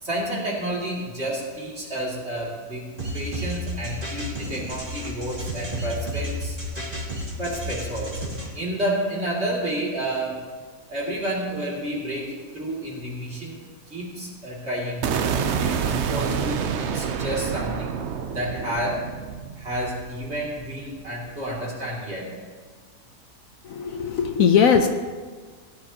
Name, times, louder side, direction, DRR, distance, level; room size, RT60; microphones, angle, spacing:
voice 1, 0.0-2.9 3.1-6.6 7.4-10.4 10.9-13.6 13.9-15.2 15.6-17.9 18.3-19.1 19.6-22.3, right 1 dB, 40° right, -4 dB, 2.7 m, -30 dB
sound 1, 3.0-8.5, equal, 25° right, 2.4 m, -32 dB
sound 2, 15.0-21.1, right 7 dB, 60° right, 0.7 m, -28 dB
voice 2, 23.7-24.9, left 7 dB, 65° left, 6 dB, 1.0 m, -19 dB
17.0 x 10.5 x 2.8 m, 1.5 s
omnidirectional pair, 1.7 m